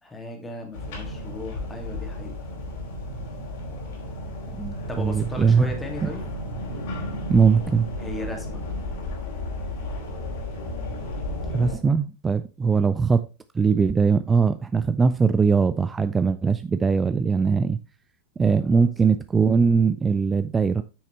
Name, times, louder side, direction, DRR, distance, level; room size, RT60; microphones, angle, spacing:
voice 1, 0.0-2.3 4.9-6.2 8.0-8.7 18.6-18.8, left 1 dB, 10° left, 2.2 m, -36 dB
sound 1, 0.7-11.8, left 1 dB, 55° left, 2.8 m, -33 dB
voice 2, 4.6-5.7 6.0-6.1 7.3-7.9 11.5-13.2 13.5-17.8 18.4-20.8, right 5 dB, 15° right, 0.4 m, -21 dB
8.7 x 6.5 x 3.2 m
figure-of-eight pair, 90°, 0 cm